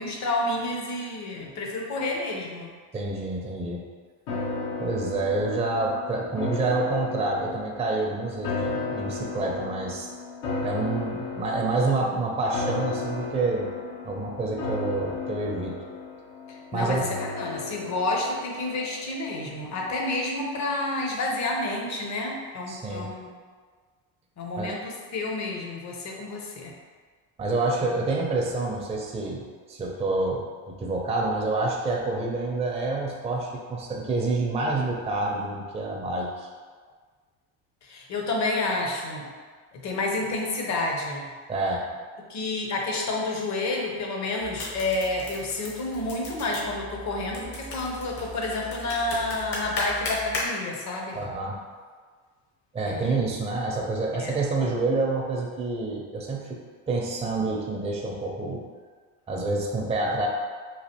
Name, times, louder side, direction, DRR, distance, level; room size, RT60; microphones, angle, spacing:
voice 1, 0.0-2.7 16.5-23.3 24.4-26.7 37.8-39.3 39.7-41.3 42.3-51.2 52.8-53.2 54.1-54.4, left 2 dB, 45° left, 0 dB, 0.7 m, -30 dB
voice 2, 2.9-3.8 4.8-10.1 10.6-13.7 14.0-15.8 16.7-17.0 22.7-23.1 24.6-24.7 27.4-36.5 41.5-41.9 51.1-51.6 52.7-56.6 56.9-58.6 59.3-60.3, right 3 dB, 15° right, -1 dB, 0.4 m, -28 dB
sound 1, 4.3-19.6 19.9-20.0, left 3 dB, 80° left, 0.9 m, -34 dB
sound 2, 44.4-50.5, left 1 dB, 60° left, 1.2 m, -36 dB
3.2 x 2.4 x 2.8 m, 1.5 s
supercardioid pair, 80°, 41 cm